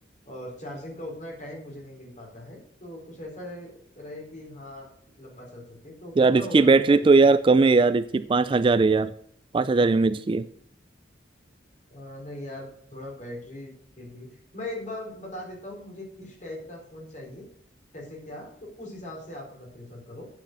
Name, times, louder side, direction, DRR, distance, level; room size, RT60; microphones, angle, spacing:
voice 1, 0.2-3.7 4.0-7.2 11.9-17.5 17.9-20.2, left 1 dB, 40° left, -1 dB, 4.1 m, -40 dB
voice 2, 6.2-9.1 9.5-10.5, right 3 dB, 30° right, 14 dB, 0.3 m, -19 dB
9.1 x 7.3 x 6.5 m, 0.66 s
head